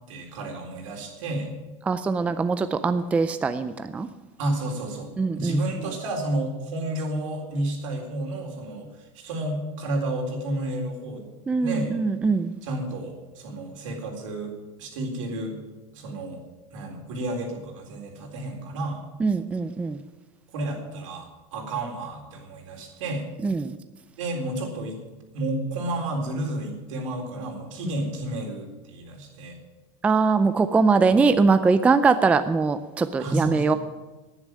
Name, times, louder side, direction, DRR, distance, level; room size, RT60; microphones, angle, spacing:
voice 1, 0.1-1.5 4.4-8.9 9.1-11.3 11.6-11.9 12.6-14.5 14.8-15.6 15.9-16.4 16.7-19.0 20.5-23.3 24.2-25.0 25.3-29.6 33.2-33.8, right 1 dB, 75° right, 3.9 m, -31 dB
voice 2, 1.8-4.1 5.2-5.6 11.5-12.5 19.2-20.0 23.4-23.8 30.0-33.7, right 4 dB, 10° right, 0.4 m, -22 dB
11.0 x 9.9 x 9.6 m
supercardioid pair, 160°, 16 cm